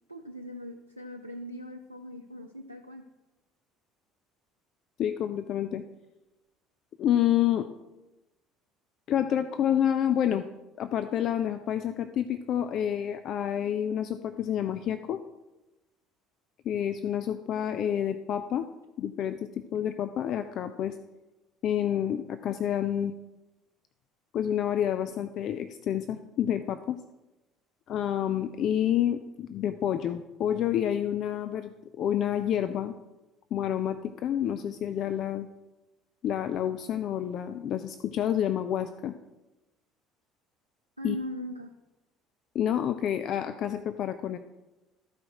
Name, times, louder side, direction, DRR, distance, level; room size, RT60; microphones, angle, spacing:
voice 1, 0.1-3.1 41.0-41.7, equal, 85° right, 3 dB, 0.4 m, -39 dB
voice 2, 5.0-5.8 7.0-7.7 9.1-10.4 10.8-15.2 16.7-18.7 19.0-21.0 21.6-23.1 24.3-27.0 27.9-32.9 33.5-35.5 36.2-39.1 41.0-41.2 42.5-44.4, left 10 dB, 45° left, 10 dB, 0.4 m, -28 dB
13.0 x 4.9 x 4.6 m, 1.0 s
figure-of-eight pair, 60°, 0 cm